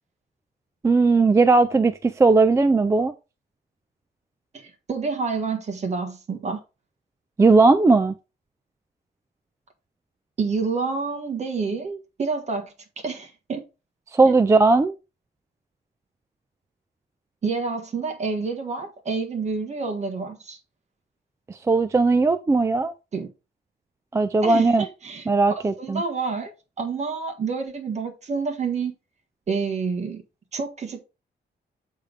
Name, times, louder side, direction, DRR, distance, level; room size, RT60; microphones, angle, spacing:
voice 1, 0.8-3.1 7.4-8.1 14.1-15.0 21.5-22.9 24.1-24.8 25.3-26.0, right 3 dB, 15° right, 0.3 m, -18 dB
voice 2, 4.5-6.6 10.4-12.7 13.0-13.6 17.4-20.6 23.1-23.3 24.4-26.5 26.8-28.9 29.5-30.2 30.5-31.0, right 4 dB, 40° right, 1.6 m, -28 dB
7.8 x 3.6 x 5.0 m
wide cardioid pair, 175°, 18 cm